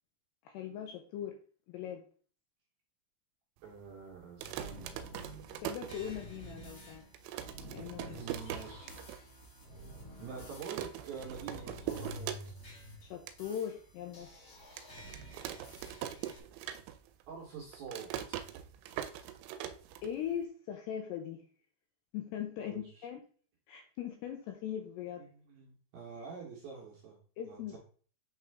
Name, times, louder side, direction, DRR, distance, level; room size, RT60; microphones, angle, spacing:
voice 1, 0.4-1.4 1.7-2.0 5.6-7.1 7.6-8.6 13.0-14.3 20.0-21.4 22.1-23.2 23.7-25.3 27.4-27.8, left 9 dB, 80° left, 4 dB, 2.5 m, -40 dB
voice 2, 3.6-5.0 8.0-8.9 10.2-12.3 17.3-18.4 22.6-23.1 25.5-27.2 27.5-27.8, right 6 dB, 70° right, -2 dB, 2.4 m, -46 dB
sound 1, 4.2-6.5 6.9-7.0 7.1-9.2 9.6-9.7 9.9-10.2 10.6-12.8 13.1-13.4 13.9-14.0 14.8-17.2 17.5-20.4, right 11 dB, 85° right, 2.9 m, -42 dB
sound 2, 4.4-16.4, equal, 50° left, 1.0 m, -50 dB
8.5 x 3.7 x 3.4 m, 0.42 s
omnidirectional pair, 5.4 m